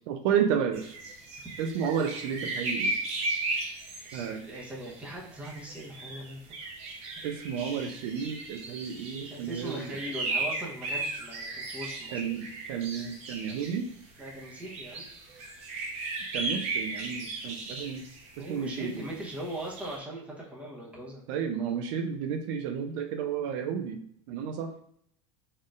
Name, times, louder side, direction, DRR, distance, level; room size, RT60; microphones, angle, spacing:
voice 1, 0.1-1.0 1.6-2.9 4.1-4.4 7.2-10.0 12.1-13.9 16.3-18.0 18.4-19.0 21.3-24.0 24.3-24.7, right 7 dB, 65° right, 5 dB, 0.5 m, -31 dB
sound 1, 0.7-13.8 14.2-20.0, right 2 dB, 40° right, 0.9 m, -36 dB
voice 2, 4.1-6.4 9.2-12.2 14.2-15.1 18.4-21.2, right 1 dB, 10° right, -3 dB, 0.9 m, -40 dB
4.2 x 3.6 x 2.4 m, 0.67 s
supercardioid pair, 145°, 16 cm